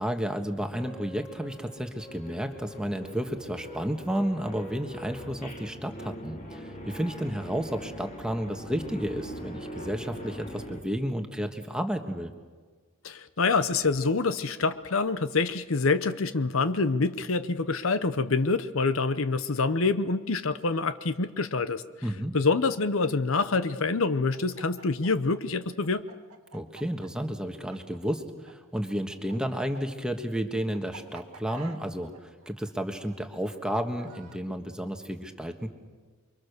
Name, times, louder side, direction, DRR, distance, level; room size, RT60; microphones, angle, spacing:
voice 1, 0.0-12.3 22.0-22.4 26.5-35.7, equal, 5° right, 5 dB, 1.5 m, -32 dB
sound 1, 0.7-10.8, equal, 35° left, 3.0 m, -42 dB
voice 2, 13.0-21.8 22.3-26.0, left 4 dB, 65° left, 12 dB, 0.9 m, -26 dB
Chicken rooster, 24.1-28.5 28.8-34.4, right 4 dB, 90° right, 2.2 m, -49 dB
29.0 x 23.5 x 6.8 m, 1.5 s
head